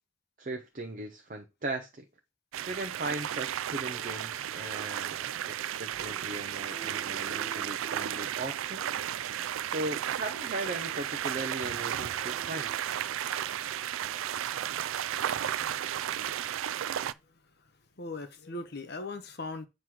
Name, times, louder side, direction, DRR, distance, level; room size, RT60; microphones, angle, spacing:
voice 1, 0.4-2.0 2.7-8.8 9.6-12.9, right 2 dB, 40° right, 0.7 m, -38 dB
sound 1, 2.5-17.1, right 10 dB, 90° right, 0.4 m, -34 dB
sound 2, 3.8-8.3 9.3-9.6 10.1-14.9, right 3 dB, 10° right, 1.1 m, -53 dB
voice 2, 17.2-17.5 18.0-19.7, left 2 dB, 55° left, 1.0 m, -39 dB
7.5 x 3.0 x 6.2 m
head